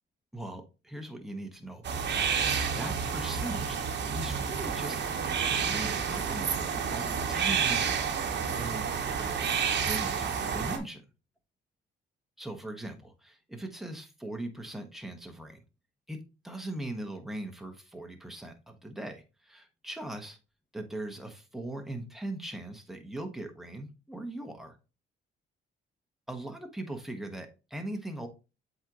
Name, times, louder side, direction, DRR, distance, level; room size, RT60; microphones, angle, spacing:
voice 1, 0.3-2.3 2.8-5.0 5.6-9.4 9.9-11.0 12.4-15.6 16.1-20.4 20.7-24.8 26.3-28.3, right 1 dB, ahead, 4 dB, 1.4 m, -40 dB
sound 1, 1.8-10.8, right 6 dB, 60° right, 1.1 m, -30 dB
7.8 x 4.0 x 3.0 m, 0.30 s
cardioid pair, 90°, 20 cm